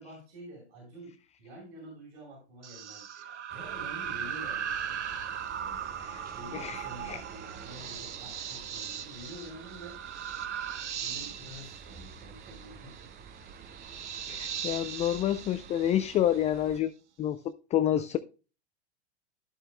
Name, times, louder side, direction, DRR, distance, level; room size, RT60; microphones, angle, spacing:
voice 1, 0.0-4.7 5.5-10.0 10.9-13.0, right 1 dB, 60° right, -3 dB, 4.9 m, -48 dB
sound 1, 2.6-16.5, right 8 dB, 85° right, 1.1 m, -39 dB
sound 2, 3.5-16.8, right 6 dB, 25° right, 0.9 m, -49 dB
voice 2, 6.5-7.2 14.3-16.9 17.2-17.4 17.7-18.2, left 11 dB, 20° left, 12 dB, 0.4 m, -28 dB
11.5 x 7.6 x 2.2 m, 0.34 s
hypercardioid pair, 100°, 34 cm